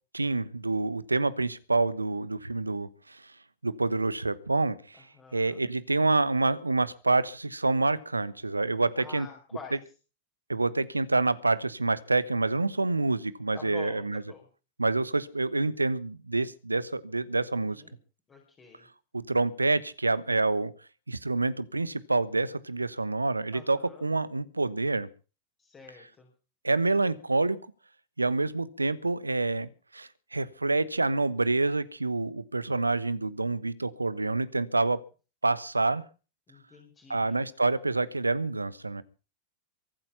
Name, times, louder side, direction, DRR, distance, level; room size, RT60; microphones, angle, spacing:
voice 1, 0.1-3.2 3.6-5.0 5.3-9.3 10.5-14.2 14.8-17.8 19.1-20.7 21.1-25.1 26.6-27.6 28.2-35.0 35.4-36.0 37.1-39.0, right 3 dB, 80° right, 18 dB, 1.1 m, -27 dB
voice 2, 5.0-5.6 8.9-9.8 13.5-14.4 17.7-18.0 18.3-18.8 23.5-24.1 25.6-26.3 36.5-37.4, left 5 dB, 20° left, 0 dB, 4.9 m, -47 dB
23.5 x 8.8 x 5.7 m, 0.36 s
figure-of-eight pair, 90°, 0 cm